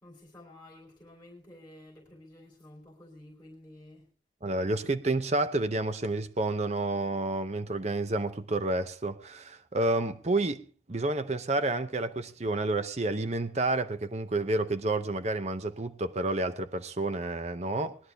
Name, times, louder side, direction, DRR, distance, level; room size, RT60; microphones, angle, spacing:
voice 1, 0.0-4.1, left 1 dB, 10° left, 3.2 m, -51 dB
voice 2, 4.4-10.6 10.9-18.0, right 2 dB, 35° right, 0.7 m, -30 dB
20.5 x 11.0 x 3.4 m
head